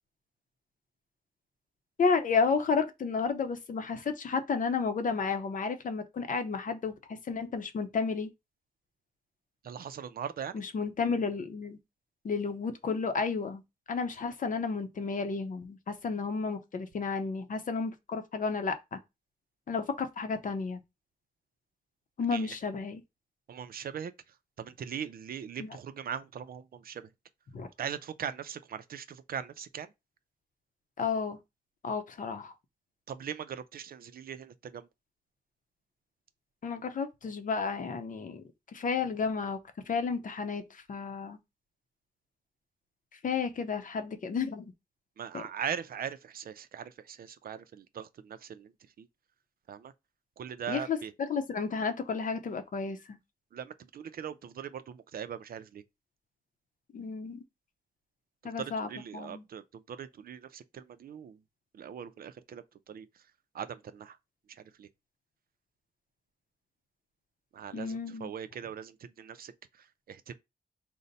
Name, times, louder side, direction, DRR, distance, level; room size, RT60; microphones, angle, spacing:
voice 1, 2.0-8.3 10.5-11.8 12.2-13.6 13.9-19.0 19.7-20.8 22.2-23.0 25.6-25.7 27.5-27.7 31.0-31.4 31.8-32.5 36.6-38.4 38.7-39.6 39.9-41.4 43.2-44.7 45.3-45.4 50.7-51.0 51.3-53.2 56.9-57.4 58.4-58.9 59.1-59.4 67.7-68.3, left 5 dB, 55° left, 0.7 m, -32 dB
voice 2, 9.6-10.6 22.3-22.6 23.5-27.1 27.8-29.9 33.1-34.9 45.2-49.1 49.7-49.9 50.4-51.1 53.5-55.8 58.4-61.4 61.7-63.3 63.5-64.2 64.5-64.9 67.5-70.3, right 8 dB, 70° right, 0.4 m, -40 dB
5.1 x 2.1 x 4.0 m
wide cardioid pair, 155°, 16 cm